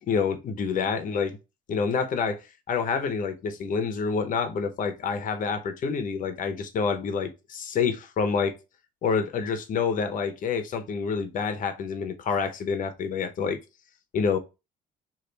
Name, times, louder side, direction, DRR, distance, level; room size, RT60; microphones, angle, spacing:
voice 1, 0.1-1.4 1.7-8.6 9.0-13.6 14.1-14.4, left 5 dB, 50° left, 0.8 m, -27 dB
3.3 x 2.5 x 3.8 m
cardioid pair, 110°, 17 cm